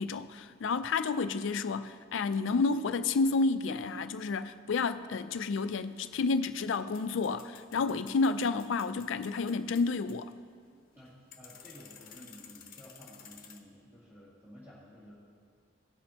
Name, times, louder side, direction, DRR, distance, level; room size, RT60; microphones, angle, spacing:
voice 1, 0.0-10.3, left 4 dB, 70° left, 0.4 m, -30 dB
sound 1, 5.5-13.6, left 7 dB, 50° left, 0.9 m, -55 dB
voice 2, 11.0-15.1, equal, 10° right, 2.2 m, -53 dB
17.5 x 6.1 x 2.9 m
head